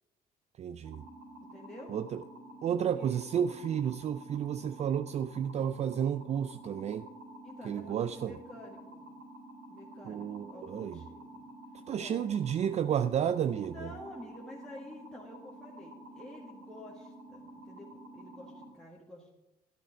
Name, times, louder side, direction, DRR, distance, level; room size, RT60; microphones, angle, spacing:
voice 1, 0.6-1.0 1.9-2.2 2.6-7.1 7.6-8.4 10.1-11.0 11.9-13.9, right 9 dB, 40° right, 12 dB, 0.4 m, -32 dB
sound 1, 0.8-18.7, right 1 dB, 70° right, 4.0 m, -50 dB
voice 2, 1.5-1.9 2.6-3.2 7.4-9.1 9.7-11.4 12.0-12.2 13.7-19.3, left 1 dB, 5° left, -4 dB, 1.7 m, -50 dB
11.5 x 9.2 x 5.0 m, 0.99 s
cardioid pair, 110°, 17 cm